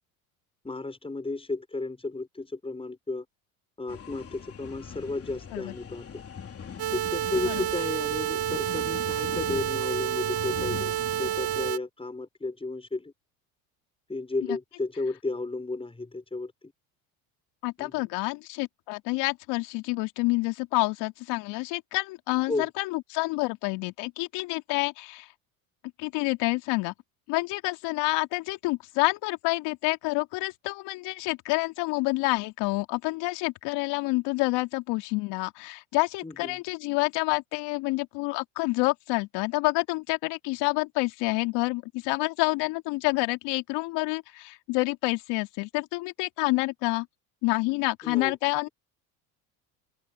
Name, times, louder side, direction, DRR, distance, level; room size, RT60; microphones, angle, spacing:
voice 1, 0.6-3.3 3.8-6.2 6.9-13.1 14.1-16.7 17.8-18.1 22.5-22.7 36.2-36.6 48.0-48.4, left 3 dB, 15° left, 5.4 m, -33 dB
sound 1, 3.9-11.7, left 7 dB, 30° left, 3.5 m, -40 dB
sound 2, 6.8-11.8, right 13 dB, 60° right, 2.7 m, -29 dB
voice 2, 17.6-25.3 26.0-26.9 27.3-47.1 47.4-48.7, left 24 dB, 70° left, 3.0 m, -28 dB
hypercardioid pair, 80°, 43 cm